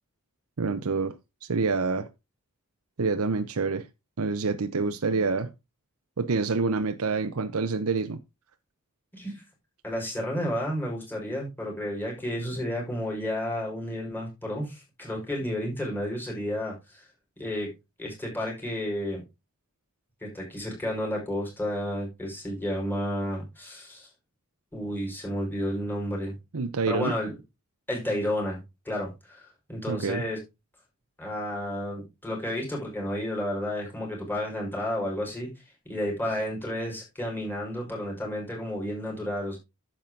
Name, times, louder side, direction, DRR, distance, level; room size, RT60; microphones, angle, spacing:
voice 1, 0.6-2.1 3.0-3.9 4.2-5.5 6.2-8.2 26.5-27.2 29.9-30.2, right 4 dB, 75° right, 0.7 m, -27 dB
voice 2, 9.1-9.4 9.8-17.0 17.4-17.7 18.0-19.2 20.2-24.1 24.7-26.3 26.9-27.3 27.9-28.6 28.8-30.4 31.2-35.5 35.9-39.6, left 1 dB, 10° left, 4.9 m, -31 dB
10.5 x 7.4 x 3.8 m
head